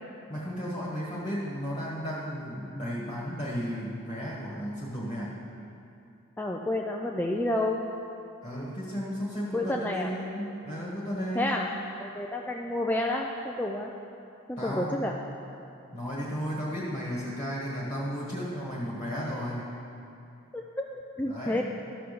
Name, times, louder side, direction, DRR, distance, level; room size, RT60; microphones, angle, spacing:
voice 1, 0.3-5.3 8.4-11.5 14.6-15.3 15.9-19.7 21.2-21.6, equal, 25° left, -6 dB, 1.4 m, -34 dB
voice 2, 6.4-7.8 9.5-10.1 11.4-11.7 12.0-13.9 14.5-15.2 20.5-21.6, left 1 dB, 10° left, 0 dB, 0.3 m, -30 dB
13.0 x 5.7 x 6.7 m, 2.7 s
head